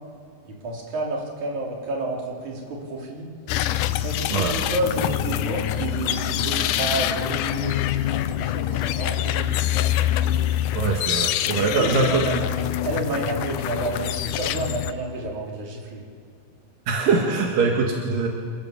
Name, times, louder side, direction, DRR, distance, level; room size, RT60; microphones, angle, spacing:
voice 1, 0.6-3.3 4.0-9.9 11.7-12.3 12.8-16.0, right 2 dB, 60° right, -2 dB, 5.2 m, -30 dB
sound 1, 3.5-14.9, left 12 dB, 75° left, 2.1 m, -25 dB
voice 2, 4.3-4.6 10.8-12.2 16.9-18.3, right 4 dB, 85° right, 0 dB, 3.6 m, -22 dB
28.0 x 15.5 x 7.4 m, 2.3 s
omnidirectional pair, 3.8 m